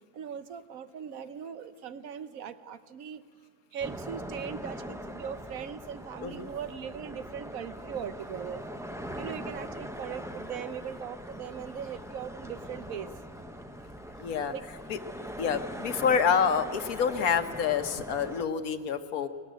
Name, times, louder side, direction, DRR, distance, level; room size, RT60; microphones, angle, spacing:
voice 1, 0.1-3.3 3.7-8.6 9.1-13.1 14.5-14.6 15.2-15.3, right 8 dB, 70° right, 12 dB, 1.2 m, -39 dB
sound 1, 3.8-18.4, equal, 5° right, 0.7 m, -41 dB
voice 2, 14.2-14.5 14.9-15.0 15.4-19.3, left 7 dB, 75° left, 9 dB, 1.5 m, -27 dB
19.0 x 18.0 x 9.2 m, 2.1 s
omnidirectional pair, 1.5 m